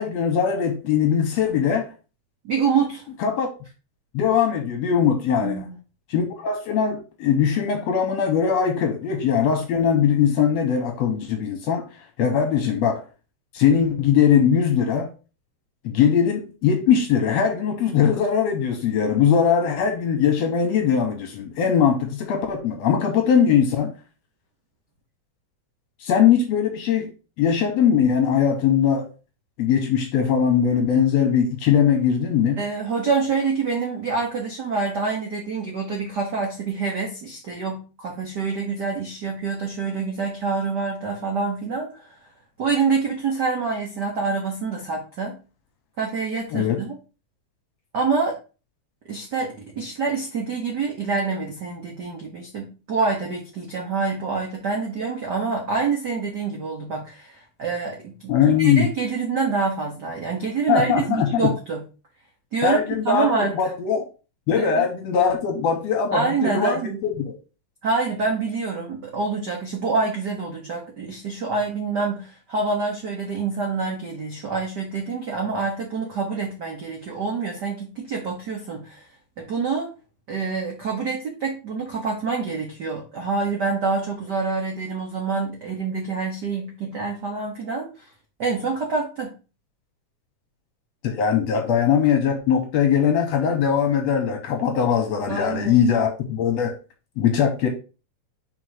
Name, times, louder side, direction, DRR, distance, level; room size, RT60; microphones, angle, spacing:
voice 1, 0.0-1.9 3.2-3.5 4.1-5.7 6.1-11.8 12.2-13.0 13.5-15.1 15.8-23.9 26.0-27.1 27.4-29.1 29.6-32.6 46.5-46.8 58.3-58.9 60.7-61.5 62.6-64.0 64.5-67.3 91.0-96.7 97.2-97.7, left 7 dB, 70° left, 1.8 m, -20 dB
voice 2, 2.4-3.0 5.4-5.8 32.6-42.3 42.6-45.4 46.0-46.9 47.9-48.4 49.1-61.8 62.5-62.8 63.0-63.7 64.6-64.8 66.1-67.0 67.8-79.0 79.4-79.9 80.3-88.1 88.4-89.3 95.3-95.8, right 4 dB, 80° right, 0.9 m, -26 dB
5.2 x 4.0 x 4.8 m
omnidirectional pair, 3.7 m